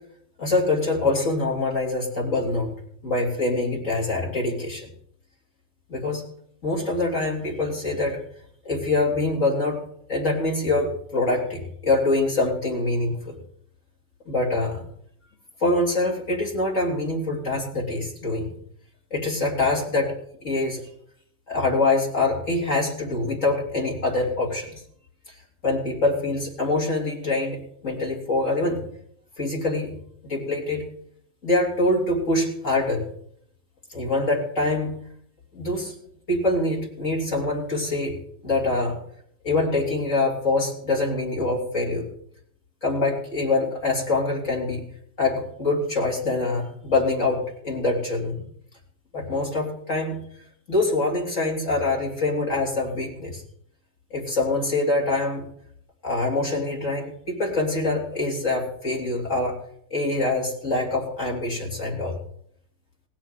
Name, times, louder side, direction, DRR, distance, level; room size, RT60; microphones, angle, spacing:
voice 1, 0.4-2.7 3.0-4.9 5.9-6.2 6.6-8.2 8.6-9.8 10.1-13.4 14.3-14.8 15.6-18.5 19.1-20.1 20.4-20.8 21.5-24.8 25.3-25.4 25.6-28.8 29.4-29.9 30.2-30.8 31.4-33.1 33.9-35.0 35.5-35.9 36.3-38.2 38.4-39.0 39.4-42.0 42.8-44.8 45.2-48.4 49.1-50.2 50.7-53.4 54.1-55.4 56.0-59.6 59.9-62.2, left 2 dB, 40° left, -2 dB, 3.2 m, -24 dB
19.0 x 7.3 x 7.6 m, 0.68 s
omnidirectional pair, 2.1 m